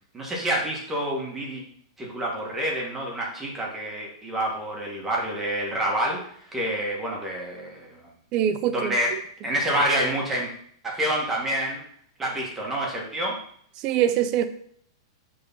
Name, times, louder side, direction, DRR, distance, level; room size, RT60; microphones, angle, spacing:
voice 1, 0.1-1.6 2.0-8.1 8.7-9.1 9.4-10.5 10.9-11.8 12.2-13.4, right 1 dB, 10° right, -2 dB, 1.6 m, -28 dB
voice 2, 8.3-9.2 13.8-14.5, right 10 dB, 30° right, 11 dB, 0.5 m, -24 dB
6.6 x 3.9 x 5.5 m, 0.63 s
supercardioid pair, 160°, 2 cm